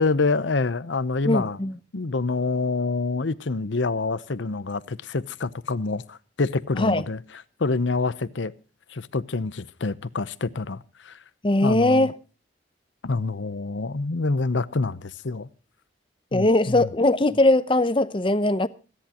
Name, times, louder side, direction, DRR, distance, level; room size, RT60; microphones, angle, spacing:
voice 1, 0.0-1.6 1.9-7.2 7.6-8.5 8.9-11.2 11.6-12.1 13.0-15.5 16.3-16.9, left 3 dB, 85° left, 0.8 m, -26 dB
voice 2, 1.2-1.7 6.8-7.0 11.4-12.1 16.3-18.7, left 2 dB, 25° left, 0.7 m, -20 dB
27.0 x 10.5 x 2.9 m
head